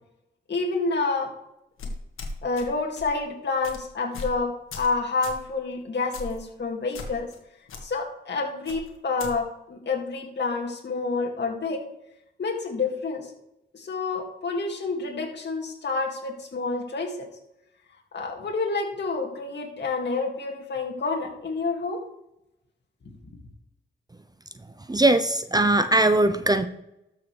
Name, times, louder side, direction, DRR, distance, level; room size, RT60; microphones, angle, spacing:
voice 1, 0.5-1.3 2.4-7.3 7.8-11.8 12.4-13.3 13.7-17.3 18.1-22.0 23.0-23.1, left 3 dB, 60° left, 1 dB, 2.4 m, -28 dB
sound 1, 1.8-2.7 3.0-3.2 3.6-3.8 4.1-4.4 4.7-4.9 5.2-5.4 6.1-6.4 6.9-7.4 7.7-7.8 8.7-9.3, left 3 dB, 90° left, 1.6 m, -37 dB
voice 2, 24.9-26.7, right 2 dB, 20° right, 11 dB, 0.7 m, -20 dB
12.5 x 6.5 x 3.4 m, 0.84 s
cardioid pair, 60°, 21 cm